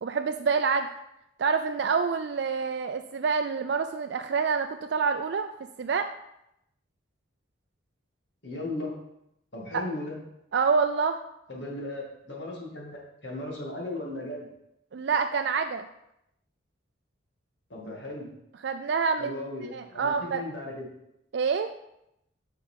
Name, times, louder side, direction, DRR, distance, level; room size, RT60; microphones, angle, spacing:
voice 1, 0.0-0.9 1.4-5.5 5.8-6.1 9.7-9.9 10.5-11.2 14.9-15.8 18.6-19.4 19.7-20.4 21.3-21.7, right 5 dB, 60° right, 7 dB, 0.4 m, -27 dB
voice 2, 8.4-9.0 9.5-10.2 11.5-14.5 17.7-18.3 19.2-20.8, left 2 dB, 65° left, -2 dB, 2.2 m, -36 dB
6.7 x 5.9 x 4.5 m, 0.81 s
head